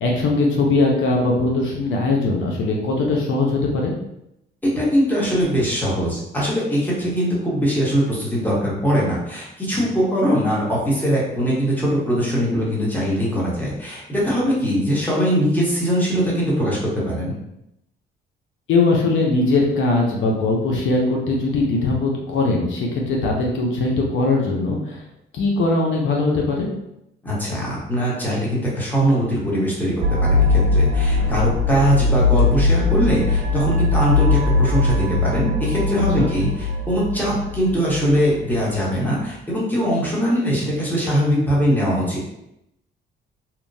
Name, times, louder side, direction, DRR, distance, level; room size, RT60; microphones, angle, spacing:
voice 1, 0.0-3.9 18.7-25.0 25.3-26.7 31.2-31.3 36.2-36.3, left 3 dB, 75° left, -1 dB, 0.6 m, -20 dB
voice 2, 4.8-17.3 27.2-42.2, equal, 10° left, -6 dB, 1.1 m, -21 dB
sound 1, 30.0-38.7, left 3 dB, 75° right, 0.4 m, -20 dB
2.8 x 2.1 x 2.6 m, 0.84 s
cardioid pair, 90°, 20 cm